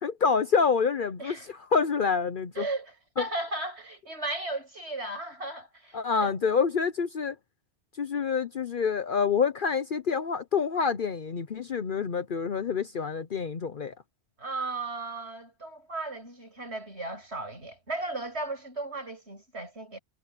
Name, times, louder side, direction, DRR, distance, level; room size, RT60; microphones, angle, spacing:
voice 1, 0.0-2.7 3.2-3.3 5.9-7.3 8.0-13.9, left 5 dB, 55° left, 0.9 m, -27 dB
voice 2, 2.6-6.3 14.4-20.0, right 2 dB, 85° right, 7.5 m, -36 dB
omnidirectional pair, 1.1 m